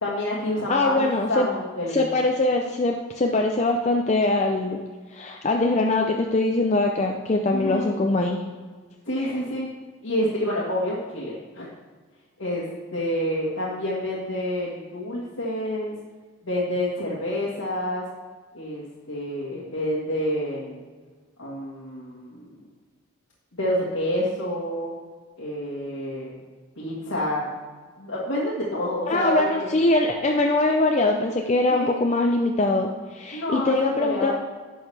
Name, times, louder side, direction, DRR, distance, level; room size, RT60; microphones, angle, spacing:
voice 1, 0.0-2.2 7.5-8.0 9.1-9.7 10.0-11.7 12.4-12.7 12.9-15.9 16.4-18.0 18.5-20.8 21.4-22.5 23.6-24.9 25.4-26.4 26.8-27.5 28.0-29.7 31.7-32.0 33.3-34.3, equal, 75° left, -5 dB, 1.6 m, -28 dB
voice 2, 0.7-1.5 1.9-4.8 5.1-8.4 9.2-9.4 29.1-34.3, left 2 dB, 30° left, 2 dB, 0.5 m, -22 dB
10.5 x 6.2 x 3.3 m, 1.4 s
head